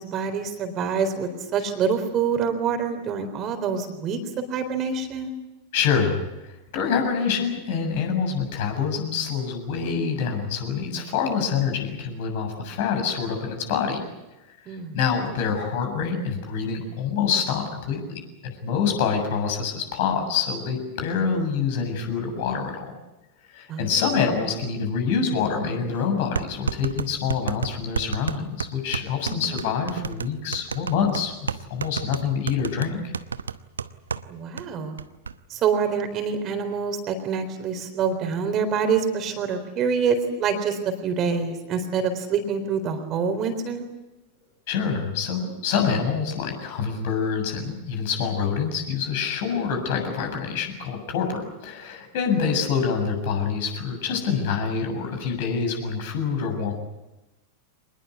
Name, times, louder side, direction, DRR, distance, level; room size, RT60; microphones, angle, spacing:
voice 1, 0.0-5.3 14.7-15.0 23.7-24.2 29.3-29.7 34.3-34.9 35.5-43.8, right 6 dB, 30° right, 7 dB, 3.9 m, -26 dB
voice 2, 5.7-14.0 14.7-22.9 23.5-33.1 44.7-56.7, left 6 dB, 50° left, 4 dB, 7.2 m, -26 dB
sound 1, 26.3-34.3 34.6-34.7 35.0-35.3, right 6 dB, 70° right, 0.9 m, -30 dB
25.5 x 20.5 x 8.3 m, 1.0 s
figure-of-eight pair, 90°, 0 cm